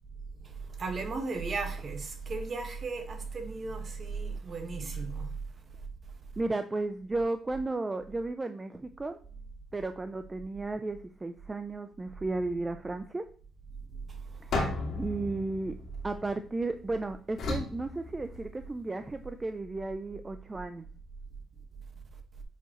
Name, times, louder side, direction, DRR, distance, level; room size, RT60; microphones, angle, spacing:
voice 1, 0.8-5.3 14.7-15.3, right 4 dB, 45° right, 1.5 m, -35 dB
voice 2, 6.4-9.2 9.7-13.2 14.4-15.8 16.0-20.9, right 2 dB, 20° right, 0.5 m, -34 dB
sound 1, 14.5-16.7 17.4-18.8, left 3 dB, 65° left, 2.4 m, -35 dB
8.0 x 4.6 x 3.1 m
cardioid pair, 90°, 0 cm